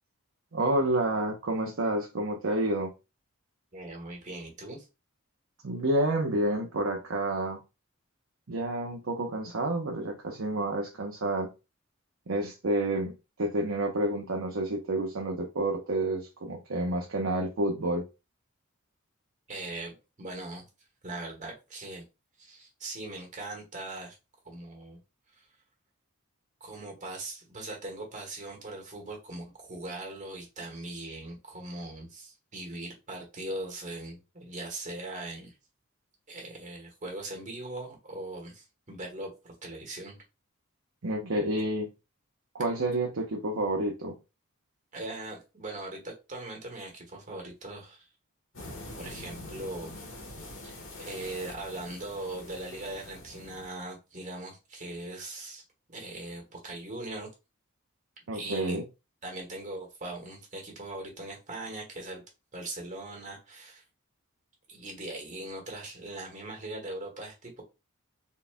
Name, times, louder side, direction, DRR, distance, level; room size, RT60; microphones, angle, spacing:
voice 1, 0.5-2.9 5.6-7.6 8.5-11.5 12.3-13.1 13.4-18.0 41.0-41.9 42.5-44.2 58.3-58.8, right 1 dB, 75° right, 0.8 m, -29 dB
voice 2, 3.7-4.9 19.5-20.6 21.0-22.0 22.4-24.1 24.4-25.0 25.4-25.5 26.6-35.5 36.3-40.2 41.5-41.6 44.9-48.1 49.0-49.9 50.6-55.6 55.9-57.3 58.3-58.8 59.2-62.2 62.5-63.8 64.7-67.6, right 2 dB, 35° right, 1.6 m, -40 dB
sound 1, 48.5-53.7, left 1 dB, 65° left, 1.7 m, -44 dB
4.2 x 4.1 x 2.2 m
head